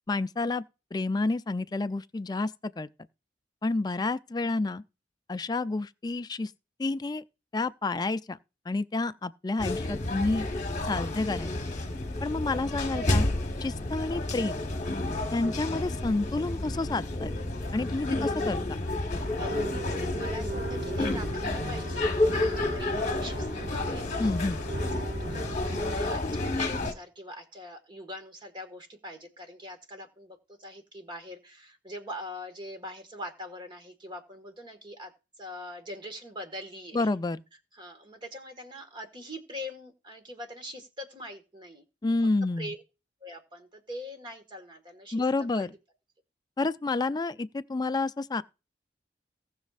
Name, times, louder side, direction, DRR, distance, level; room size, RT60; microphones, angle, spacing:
voice 1, 0.1-0.6 0.9-2.9 3.6-4.8 5.3-6.5 6.8-7.2 7.5-8.4 8.7-10.4 10.9-11.5 12.2-13.3 13.6-14.6 15.3-17.4 17.7-18.6 24.2-24.6 36.9-37.4 42.0-42.7 45.1-45.7 46.6-48.4, left 3 dB, 20° left, 0.3 m, -29 dB
sound 1, 9.6-26.9, left 2 dB, 40° left, 1.2 m, -30 dB
sound 2, 19.1-25.9, right 3 dB, 50° right, 1.9 m, -39 dB
voice 2, 19.3-24.1 24.9-35.1 35.4-37.2 37.7-41.8 42.2-42.3 42.6-42.8 43.2-45.3 45.5-45.7, left 1 dB, 25° right, 1.6 m, -43 dB
18.5 x 6.3 x 2.4 m
head